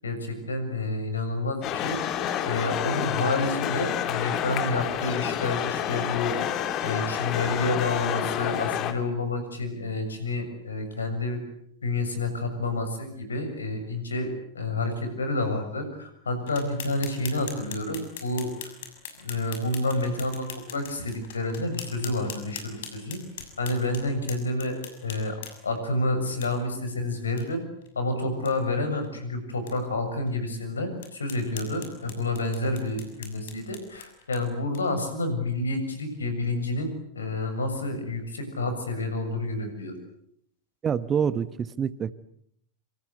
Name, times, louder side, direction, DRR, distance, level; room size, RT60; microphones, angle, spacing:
voice 1, 0.0-2.0 2.5-6.4 6.8-11.4 11.8-18.5 19.2-23.2 23.6-25.4 25.6-27.6 28.0-39.9, left 2 dB, 75° left, 8 dB, 7.1 m, -29 dB
sound 1, 1.6-8.9, left 10 dB, 35° left, 2.6 m, -29 dB
sound 2, 16.5-25.8 26.4-26.5 26.9-27.0 27.4-27.5 27.8-27.9 28.3-28.5 29.0-29.1 29.7-29.8 30.3-30.4 31.0-35.0, left 7 dB, 55° left, 6.6 m, -42 dB
voice 2, 40.8-42.1, right 7 dB, 25° right, 16 dB, 1.2 m, -26 dB
27.0 x 27.0 x 8.1 m, 0.69 s
figure-of-eight pair, 90°, 0 cm